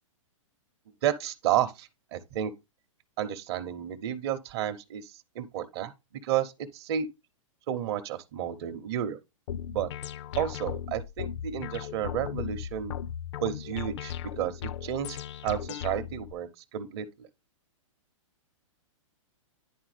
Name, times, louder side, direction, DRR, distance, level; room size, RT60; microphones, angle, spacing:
voice 1, 1.0-2.5 3.2-5.9 6.2-7.1 7.7-9.2 9.7-9.9 10.4-13.0 13.4-15.2 15.4-17.3, right 10 dB, 50° right, 0.7 m, -31 dB
sound 1, 9.5-16.3, left 9 dB, 60° left, 0.4 m, -37 dB
10.0 x 3.7 x 3.2 m
hypercardioid pair, 135°, 17 cm